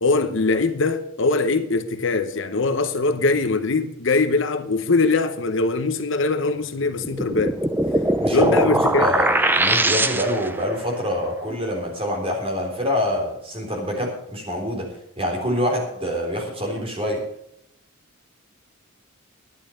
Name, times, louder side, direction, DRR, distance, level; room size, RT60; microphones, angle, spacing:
voice 1, 0.0-7.6 8.3-9.1, left 3 dB, 60° left, 0.9 m, -22 dB
sound 1, 7.0-10.6, right 1 dB, 10° right, 0.6 m, -21 dB
voice 2, 8.2-8.6 9.0-9.3 9.5-14.9 15.2-17.2, left 1 dB, 25° right, 3.8 m, -25 dB
11.0 x 11.0 x 6.3 m
head